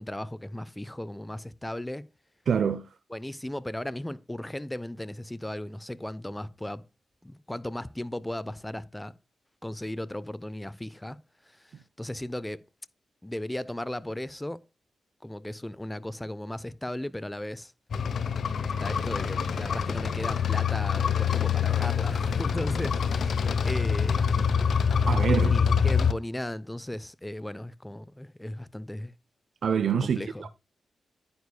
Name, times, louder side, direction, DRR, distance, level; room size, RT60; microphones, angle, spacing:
voice 1, 0.0-2.1 3.1-6.8 7.2-9.1 9.6-11.2 11.5-12.6 13.2-14.6 15.2-17.7 18.8-24.4 25.4-29.1 30.0-30.5, left 1 dB, 10° left, 0.7 m, -36 dB
voice 2, 2.5-2.9 25.1-25.6 29.6-30.5, right 7 dB, 65° right, 0.7 m, -26 dB
sound 1, 17.9-26.1, left 6 dB, 70° left, 0.9 m, -25 dB
10.5 x 9.6 x 2.3 m
cardioid pair, 75°, 0 cm